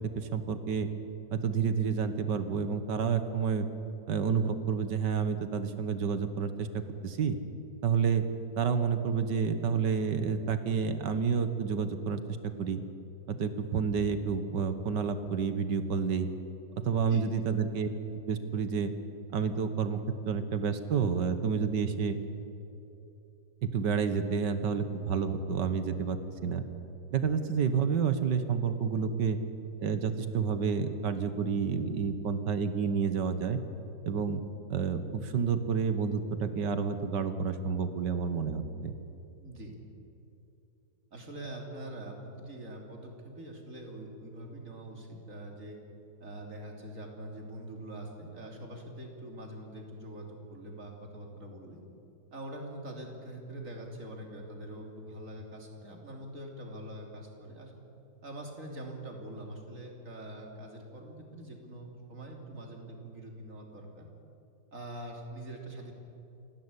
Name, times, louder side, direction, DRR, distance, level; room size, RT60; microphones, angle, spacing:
voice 1, 0.2-0.9 1.3-3.7 4.1-7.4 7.8-8.2 8.6-12.8 13.3-16.3 16.8-17.9 18.3-18.9 19.3-20.0 20.3-22.2 23.6-26.6 27.1-29.4 29.8-33.6 34.1-34.4 34.7-38.9, right 6 dB, 75° right, 10 dB, 1.9 m, -29 dB
voice 2, 39.4-39.7 41.1-45.8 46.2-51.8 52.3-57.7 58.2-64.1 64.7-65.9, right 1 dB, 45° right, 1 dB, 3.5 m, -44 dB
28.5 x 12.5 x 9.9 m, 2.8 s
omnidirectional pair, 1.9 m